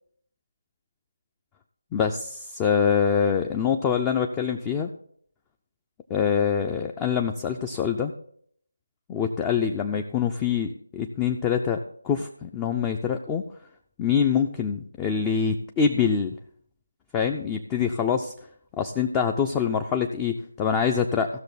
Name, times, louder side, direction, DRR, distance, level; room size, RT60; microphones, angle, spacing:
voice 1, 1.9-4.9 6.1-8.1 9.1-11.8 12.0-13.4 14.0-16.4 17.1-18.3 18.8-21.3, left 7 dB, 15° left, 5 dB, 0.4 m, -25 dB
15.5 x 6.4 x 4.0 m, 0.63 s
figure-of-eight pair, 155°, 0 cm